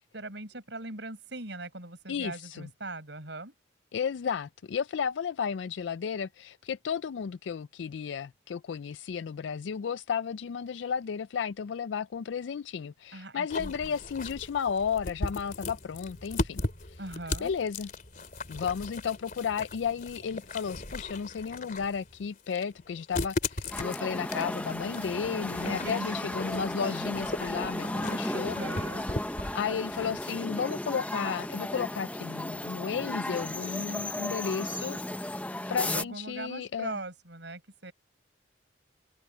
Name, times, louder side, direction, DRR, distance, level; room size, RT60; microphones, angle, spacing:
voice 1, 0.1-3.5 13.1-13.9 17.0-17.5 25.6-26.1 28.3-29.1 35.9-37.9, right 2 dB, 70° right, 5.5 m, -40 dB
voice 2, 2.1-2.7 3.9-16.6 16.9-17.1 17.4-17.9 18.5-29.0 29.5-35.0 35.7-37.0, left 6 dB, 75° left, 0.4 m, -33 dB
sound 1, 13.5-30.2, left 2 dB, 45° left, 3.3 m, -38 dB
sound 2, 23.7-36.0, left 1 dB, 10° left, 0.9 m, -35 dB
head